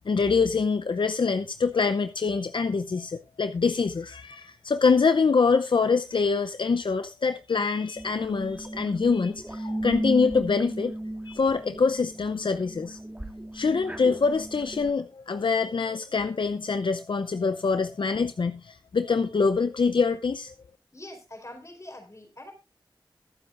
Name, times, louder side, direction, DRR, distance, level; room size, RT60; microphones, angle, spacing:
voice 1, 0.1-10.9 11.3-13.0 13.5-20.5, left 4 dB, 75° left, 0.6 m, -25 dB
sound 1, 8.0-14.9, right 1 dB, 15° right, 2.7 m, -35 dB
voice 2, 20.9-22.5, left 1 dB, 35° left, 4.5 m, -44 dB
22.5 x 7.7 x 2.5 m
wide cardioid pair, 45°, 8 cm